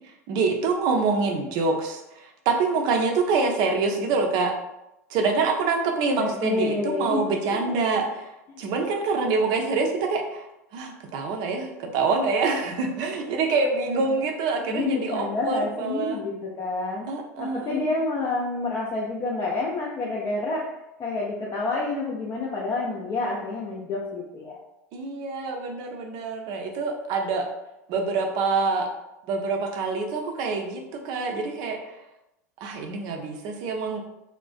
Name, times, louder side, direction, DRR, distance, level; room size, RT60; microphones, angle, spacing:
voice 1, 0.3-4.5 5.1-8.3 8.6-10.5 10.7-16.2 17.1-17.9 24.9-27.4 27.9-28.9 29.3-31.8 32.6-34.0, right 4 dB, 50° right, 3 dB, 0.5 m, -26 dB
voice 2, 6.2-7.2 7.6-7.7 8.5-8.7 14.7-17.1 17.4-20.6 21.0-24.6, left 3 dB, 30° left, -4 dB, 0.4 m, -28 dB
2.4 x 2.1 x 2.4 m, 0.91 s
hypercardioid pair, 85°, 9 cm